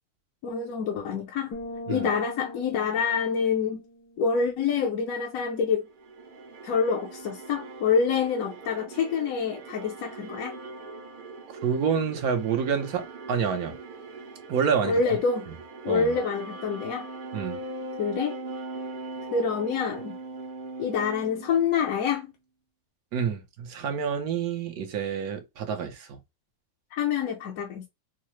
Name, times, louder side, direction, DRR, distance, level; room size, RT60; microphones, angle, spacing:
voice 1, 0.4-1.6 1.9-3.8 4.2-5.9 6.6-10.6 14.8-15.5 15.8-17.1 18.0-18.4 19.3-20.2 20.8-22.3 26.9-27.9, left 6 dB, 70° left, 1.1 m, -26 dB
sound 1, 1.5-5.2, left 1 dB, 85° left, 1.8 m, -42 dB
Viola C noise short, 5.9-22.2, right 3 dB, 50° right, 0.6 m, -41 dB
voice 2, 11.6-13.8 14.5-15.0 15.9-16.1 17.3-17.6 23.1-26.2, right 7 dB, 75° right, 1.2 m, -28 dB
4.6 x 2.0 x 3.1 m
omnidirectional pair, 1.7 m